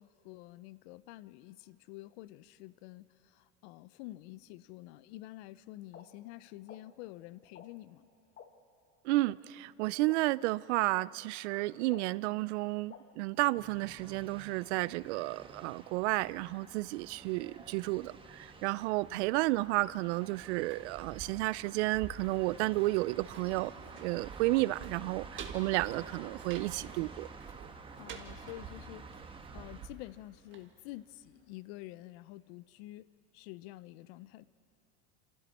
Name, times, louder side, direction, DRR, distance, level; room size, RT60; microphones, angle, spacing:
voice 1, 0.0-8.1 19.1-19.2 28.0-29.1 29.5-33.0 33.3-34.5, left 17 dB, 70° left, 0.7 m, -48 dB
sound 1, 5.9-6.0 6.7-6.8 7.5-7.7 8.4-8.5 9.3-9.4 10.1-10.2 11.0-11.1 11.9-12.0 12.9-13.0, left 9 dB, 35° left, 1.3 m, -50 dB
voice 2, 9.0-23.7 24.0-27.3, right 20 dB, 85° right, 0.5 m, -32 dB
sound 2, 13.6-29.9, right 4 dB, 15° right, 1.1 m, -51 dB
sound 3, 20.5-31.3 31.6-31.7, right 6 dB, 35° right, 1.7 m, -49 dB
28.0 x 27.5 x 4.2 m
supercardioid pair, 130°, 34 cm